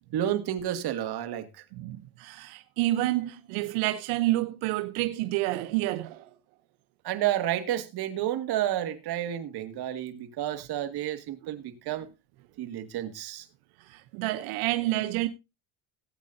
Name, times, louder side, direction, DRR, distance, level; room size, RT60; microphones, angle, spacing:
voice 1, 0.1-1.5 7.0-12.1 12.6-13.4, right 12 dB, 55° right, 2.1 m, -30 dB
voice 2, 1.8-6.3 13.8-15.3, right 17 dB, 85° right, 0.9 m, -29 dB
18.0 x 8.6 x 2.7 m
cardioid pair, 130°, 47 cm